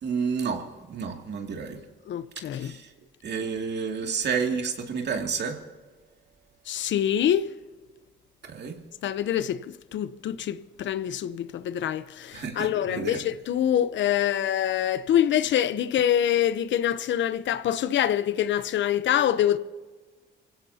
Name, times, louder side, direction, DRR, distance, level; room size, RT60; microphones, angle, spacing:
voice 1, 0.0-1.8 2.4-2.9 3.2-5.6 8.4-8.8 12.3-13.2, right 6 dB, 60° right, 2.5 m, -30 dB
voice 2, 2.1-2.7 6.7-7.5 9.0-9.6 9.9-19.6, left 10 dB, 70° left, 0.8 m, -25 dB
24.5 x 16.5 x 2.9 m
cardioid pair, 90°, 20 cm